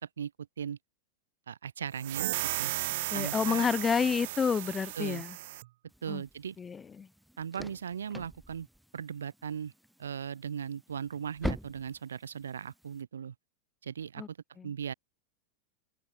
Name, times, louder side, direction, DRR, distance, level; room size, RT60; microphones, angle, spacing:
voice 1, 1.5-2.3 2.6-2.7 3.1-3.7 5.0-5.2 6.0-6.6 7.4-8.7 8.9-9.7 10.0-13.3 13.8-14.4 14.6-14.9, right 8 dB, 70° right, 2.7 m, -38 dB
sound 1, 2.0-5.7, right 18 dB, 50° right, 0.9 m, -35 dB
voice 2, 3.1-5.4 6.1-6.2 6.6-7.1 14.2-14.3 14.6-14.7, left 6 dB, 20° left, 1.8 m, -29 dB
sound 2, 5.9-13.0, equal, ahead, 2.1 m, -44 dB
figure-of-eight pair, 90°, 0 cm